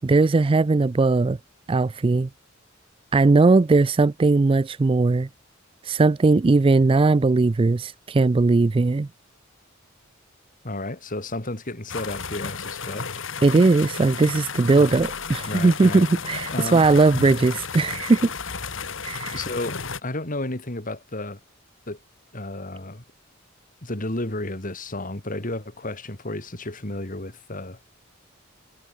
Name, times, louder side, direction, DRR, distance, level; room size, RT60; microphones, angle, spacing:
voice 1, 0.0-1.4 1.7-2.3 3.1-5.3 5.8-9.1 13.4-18.3 19.0-19.4, right 3 dB, 25° right, 0.4 m, -19 dB
voice 2, 10.6-13.3 14.6-14.9 15.5-16.1 16.5-16.9 19.3-21.4 21.9-22.0 22.3-23.0 23.8-27.8, left 2 dB, 40° left, 3.0 m, -32 dB
sound 1, 11.9-20.0, left 5 dB, 65° left, 2.7 m, -33 dB
head